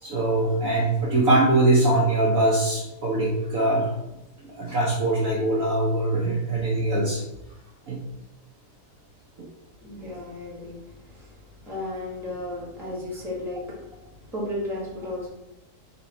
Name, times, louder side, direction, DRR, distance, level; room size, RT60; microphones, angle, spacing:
voice 1, 0.0-3.9 4.6-7.2 7.9-8.0 9.4-9.5, right 2 dB, 65° right, -3 dB, 0.9 m, -22 dB
voice 2, 9.8-11.4 11.6-14.0 14.3-15.3, left 1 dB, ahead, -5 dB, 1.0 m, -34 dB
4.0 x 2.4 x 4.0 m, 0.91 s
omnidirectional pair, 1.9 m